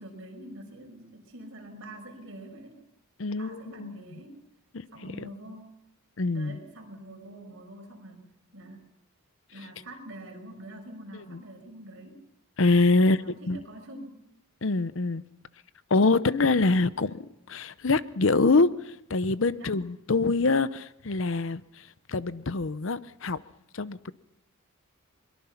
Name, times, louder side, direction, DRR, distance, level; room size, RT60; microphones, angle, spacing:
voice 1, 0.0-2.8 3.3-4.4 4.9-5.7 6.3-8.2 8.5-8.9 9.5-12.2 13.0-14.2 19.6-19.7, right 1 dB, 60° right, 6.2 m, -45 dB
voice 2, 3.2-3.9 4.7-5.2 6.2-6.6 11.3-11.4 12.6-13.2 13.5-13.6 14.6-15.2 15.9-23.4 23.7-24.1, left 3 dB, 60° left, 0.7 m, -25 dB
22.5 x 22.5 x 5.8 m
head